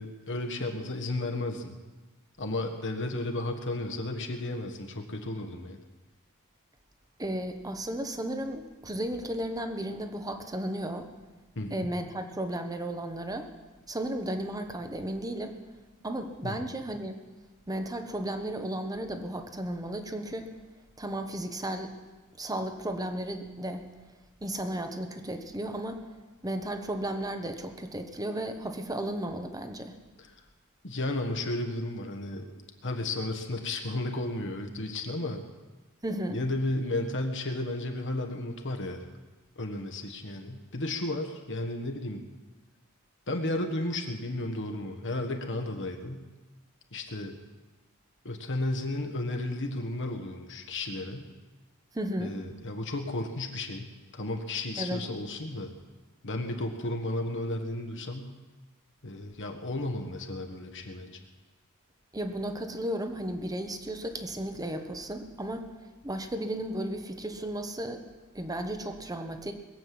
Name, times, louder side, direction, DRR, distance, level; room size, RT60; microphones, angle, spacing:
voice 1, 0.0-1.8 2.4-5.8 11.5-11.9 16.4-16.6 30.2-30.3 30.8-35.4 36.3-39.1 39.6-42.2 43.3-46.2 46.9-47.4 48.2-51.3 52.2-55.7 56.2-58.3 59.0-61.2, left 2 dB, 55° left, 4 dB, 1.5 m, -33 dB
voice 2, 7.2-11.1 11.7-13.5 13.9-15.5 16.0-17.2 17.7-20.5 21.0-21.9 22.4-23.8 24.4-26.0 26.4-30.0 36.0-36.4 51.9-52.3 54.8-55.0 62.1-65.7 66.0-68.0 68.3-69.5, right 1 dB, 15° right, 6 dB, 1.2 m, -34 dB
21.0 x 7.8 x 7.8 m, 1.2 s
head